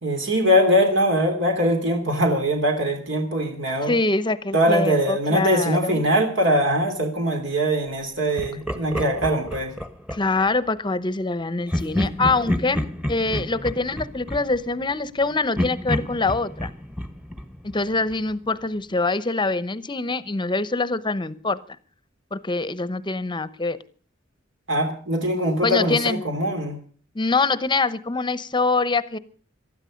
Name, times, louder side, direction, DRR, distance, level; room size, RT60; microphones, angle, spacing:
voice 1, 0.0-3.9 4.5-9.7 24.7-26.8, equal, 65° right, 4 dB, 3.0 m, -22 dB
voice 2, 3.9-6.0 10.1-16.7 17.6-21.6 22.3-23.8 25.6-26.2 27.1-29.2, left 3 dB, 25° left, 15 dB, 0.9 m, -24 dB
Laughter, 8.4-10.5 11.7-15.2 15.6-18.3, left 1 dB, 5° right, 1.3 m, -29 dB
19.0 x 13.0 x 5.2 m, 0.42 s
head